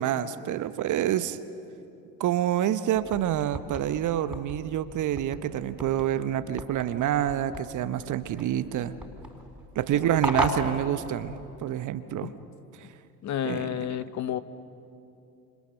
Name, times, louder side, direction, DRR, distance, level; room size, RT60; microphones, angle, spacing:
voice 1, 0.0-1.4 2.2-8.9 9.7-12.3 13.4-13.7, right 11 dB, 40° right, 13 dB, 1.1 m, -27 dB
sound 1, 2.9-11.7, equal, ahead, 4.4 m, -37 dB
voice 2, 13.2-14.4, left 10 dB, 35° left, 13 dB, 1.1 m, -31 dB
29.5 x 28.0 x 6.8 m, 2.7 s
figure-of-eight pair, 70°, 48 cm